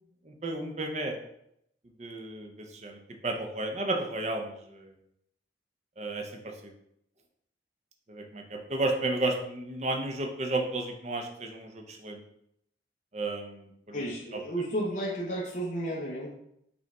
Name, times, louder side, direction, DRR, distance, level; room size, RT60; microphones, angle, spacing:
voice 1, 0.3-1.2 2.0-4.9 6.0-6.7 8.1-12.2 13.1-14.0, right 2 dB, 40° right, 3 dB, 0.6 m, -33 dB
voice 2, 13.9-16.3, right 1 dB, 45° left, -4 dB, 0.6 m, -32 dB
5.1 x 2.4 x 4.1 m, 0.75 s
head